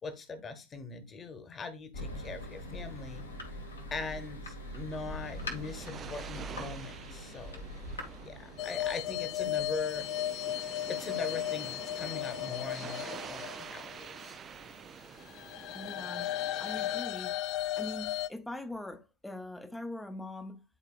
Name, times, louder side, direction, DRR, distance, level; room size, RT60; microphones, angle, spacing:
voice 1, 0.0-3.3 3.9-7.7 8.2-10.1 10.9-14.4, left 4 dB, 20° left, 1.3 m, -41 dB
Thunder, 1.9-10.3, left 1 dB, 75° left, 2.1 m, -43 dB
sound 1, 4.8-17.0, right 8 dB, 25° right, 0.3 m, -47 dB
sound 2, 8.6-14.3 15.2-18.3, left 13 dB, 35° left, 0.5 m, -35 dB
voice 2, 15.7-17.4 17.7-20.6, left 1 dB, 5° left, 0.7 m, -42 dB
11.0 x 4.5 x 2.4 m
figure-of-eight pair, 90°, 0 cm